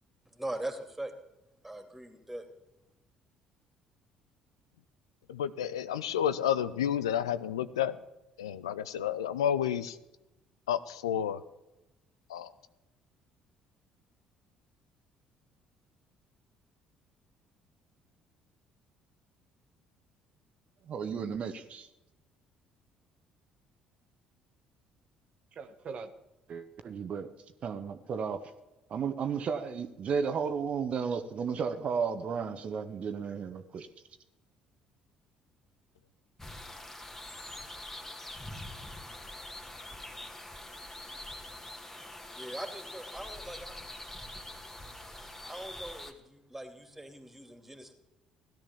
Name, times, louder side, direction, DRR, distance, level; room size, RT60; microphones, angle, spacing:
voice 1, 0.3-1.1 1.6-2.5 42.3-43.8 45.4-47.9, right 1 dB, 10° right, 7 dB, 2.7 m, -41 dB
voice 2, 5.3-8.0 8.4-10.0 10.7-11.4 12.3-12.5, left 9 dB, 75° left, 14 dB, 0.5 m, -30 dB
voice 3, 20.8-21.9 25.5-26.1 26.5-27.3 27.6-28.5 28.9-33.9, right 6 dB, 45° right, 9 dB, 1.1 m, -34 dB
sound 1, 36.4-46.1, left 1 dB, 15° left, 2.2 m, -44 dB
17.0 x 12.0 x 7.2 m, 0.97 s
figure-of-eight pair, 50°, 3 cm